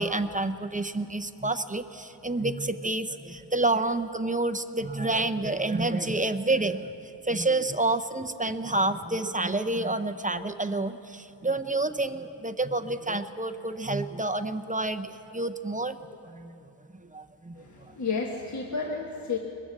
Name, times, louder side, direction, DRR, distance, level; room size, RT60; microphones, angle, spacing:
voice 1, 0.0-6.9 7.2-16.0 16.2-16.5 17.1-17.6, right 2 dB, 20° right, 8 dB, 0.6 m, -28 dB
voice 2, 17.6-19.4, left 4 dB, 40° left, 0 dB, 1.5 m, -31 dB
22.0 x 22.0 x 7.4 m, 2.8 s
wide cardioid pair, 165°, 45 cm